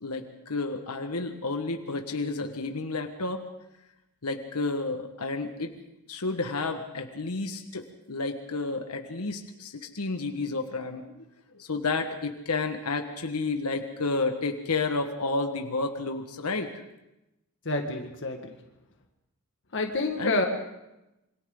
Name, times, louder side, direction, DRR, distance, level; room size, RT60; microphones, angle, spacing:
voice 1, 0.0-3.4 4.2-5.7 6.1-11.1 11.5-16.7 20.2-20.4, left 3 dB, 90° left, 5 dB, 1.5 m, -31 dB
voice 2, 17.7-18.5 19.7-20.4, left 2 dB, 60° left, 3 dB, 1.8 m, -28 dB
27.5 x 24.5 x 3.9 m, 0.93 s
head